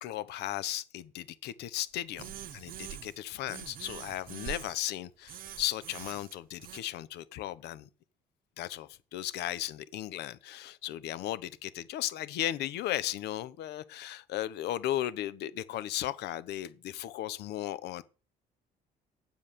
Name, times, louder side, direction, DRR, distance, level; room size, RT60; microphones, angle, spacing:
voice 1, 0.0-7.9 8.6-18.0, left 13 dB, 80° left, 1.0 m, -36 dB
sound 1, 2.2-3.2 3.5-4.8 5.3-6.8, right 11 dB, 55° right, 0.9 m, -44 dB
9.2 x 7.8 x 6.8 m
cardioid pair, 110°, 17 cm